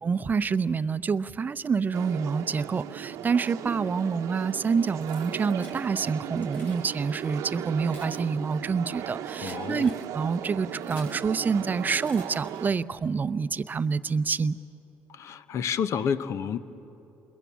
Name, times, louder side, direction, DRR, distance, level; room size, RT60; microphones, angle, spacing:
voice 1, 0.0-14.6, right 5 dB, 30° right, 14 dB, 0.6 m, -27 dB
sound 1, 1.9-12.7, right 10 dB, 70° right, 0.9 m, -37 dB
Keys jangling, 5.0-5.8 6.4-6.8 7.6-11.3 12.0-12.9, left 2 dB, 30° left, 5.9 m, -51 dB
voice 2, 9.4-9.9 15.1-16.6, left 7 dB, 60° left, 14 dB, 0.9 m, -30 dB
27.5 x 21.5 x 7.4 m, 3.0 s
supercardioid pair, 80°, 6 cm